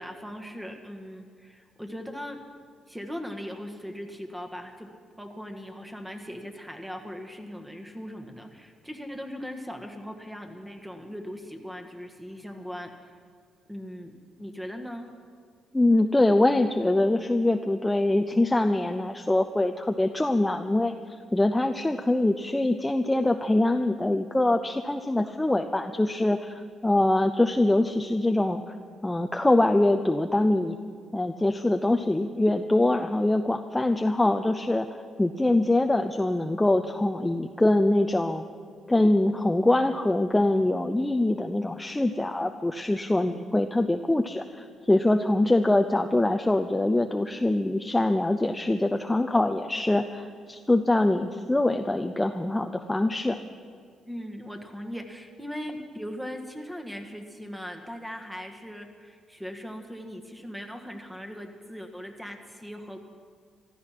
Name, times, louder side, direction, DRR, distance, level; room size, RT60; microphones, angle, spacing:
voice 1, 0.0-2.4 2.9-4.9 5.2-13.1 13.7-15.1 54.1-63.0, equal, 5° right, 4 dB, 1.5 m, -39 dB
voice 2, 15.7-20.9 21.3-28.6 29.0-30.8 31.1-34.9 35.2-38.4 38.9-53.4, left 1 dB, 10° left, 6 dB, 0.5 m, -24 dB
15.0 x 12.5 x 5.9 m, 2.1 s
cardioid pair, 90°, 0 cm